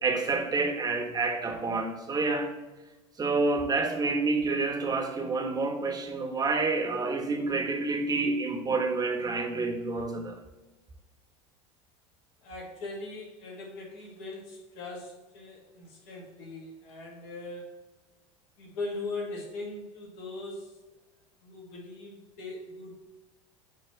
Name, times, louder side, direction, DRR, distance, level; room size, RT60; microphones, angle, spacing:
voice 1, 0.0-2.5 3.2-10.4, right 3 dB, 25° right, 1.2 m, -28 dB
voice 2, 12.4-17.7 18.6-20.8 21.4-22.9, left 2 dB, 65° left, 2.1 m, -40 dB
7.0 x 3.1 x 5.8 m
hypercardioid pair, 80°, 16 cm